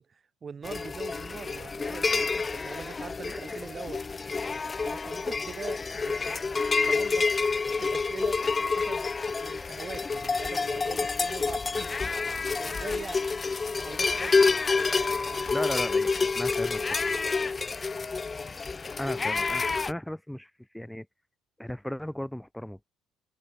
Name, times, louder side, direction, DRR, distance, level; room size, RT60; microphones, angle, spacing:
voice 1, 0.0-4.0 4.8-7.3 7.8-9.1 9.4-12.0 12.6-13.3 13.7-15.6, right 6 dB, 40° right, 3.4 m, -43 dB
sound 1, 0.6-19.9, left 4 dB, 30° left, 0.4 m, -28 dB
voice 2, 3.3-3.6 15.5-16.8 19.0-21.1 21.6-22.9, left 1 dB, 5° left, 0.8 m, -36 dB
supercardioid pair, 65°, 0 cm